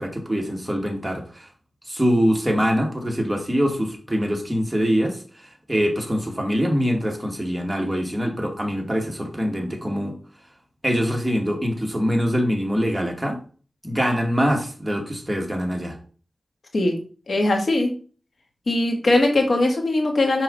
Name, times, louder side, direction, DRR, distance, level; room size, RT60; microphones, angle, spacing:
voice 1, 0.0-1.5 1.9-10.2 10.8-13.4 13.8-16.0, equal, 15° right, 1 dB, 2.4 m, -24 dB
voice 2, 17.3-17.9 18.7-20.4, left 2 dB, 70° left, 3 dB, 1.9 m, -20 dB
6.6 x 5.4 x 4.1 m, 0.39 s
cardioid pair, 50°, 0 cm